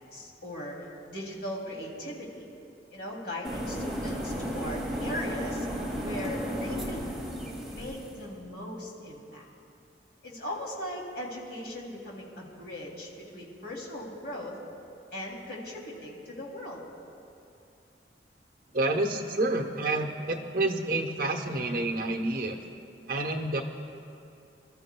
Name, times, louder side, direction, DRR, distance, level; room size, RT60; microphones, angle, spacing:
voice 1, 0.1-2.4 2.9-5.7 6.0-7.1 7.7-9.4 10.2-14.6 15.1-16.8, left 1 dB, 60° left, -3 dB, 2.8 m, -39 dB
sound 1, 3.4-8.2, equal, ahead, 2.2 m, -34 dB
voice 2, 18.7-22.6 23.1-23.6, right 2 dB, 55° right, 4 dB, 1.0 m, -28 dB
27.5 x 13.5 x 2.3 m, 2.6 s
head